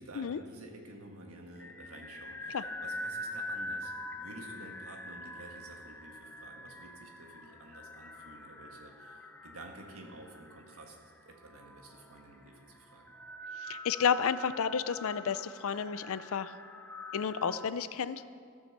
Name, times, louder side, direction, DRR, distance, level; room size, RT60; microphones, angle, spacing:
voice 1, 0.0-11.0 11.2-13.1, right 2 dB, 70° right, 2 dB, 1.7 m, -51 dB
sound 1, 1.6-17.7, left 1 dB, 10° left, 0.6 m, -44 dB
voice 2, 13.7-16.5 17.1-18.2, left 7 dB, 65° left, 15 dB, 0.4 m, -31 dB
14.5 x 6.4 x 6.6 m, 2.2 s
head